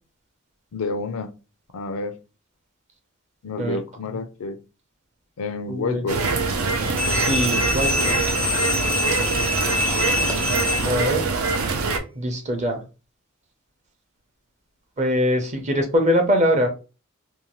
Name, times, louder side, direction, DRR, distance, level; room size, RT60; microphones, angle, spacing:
voice 1, 0.7-1.3 1.7-2.2 3.4-4.6 5.4-6.4 10.4-10.6, left 3 dB, 80° left, 10 dB, 0.4 m, -29 dB
voice 2, 5.7-6.0 7.1-8.2 10.8-11.2 12.2-12.8 15.0-16.7, equal, 35° right, 5 dB, 0.7 m, -22 dB
sound 1, 6.1-12.0, right 4 dB, 80° right, 0.6 m, -24 dB
sound 2, 7.0-11.2, left 3 dB, 5° left, 0.4 m, -25 dB
2.7 x 2.2 x 3.0 m, 0.32 s
head